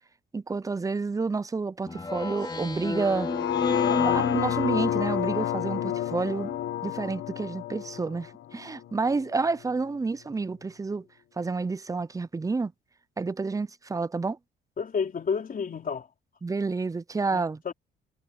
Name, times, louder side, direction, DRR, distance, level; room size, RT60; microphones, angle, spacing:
voice 1, 0.3-3.3 3.9-6.6 6.8-11.1 11.4-12.7 13.2-14.4 16.4-17.6, right 4 dB, 15° right, 0.6 m, -29 dB
Speech synthesizer, 1.9-5.4, left 3 dB, 20° left, 3.3 m, -31 dB
sound 1, 3.1-9.3 9.7-9.8, left 11 dB, 75° left, 1.4 m, -29 dB
voice 2, 14.8-16.1 17.3-17.7, left 6 dB, 45° left, 4.2 m, -30 dB
cardioid pair, 90°, 20 cm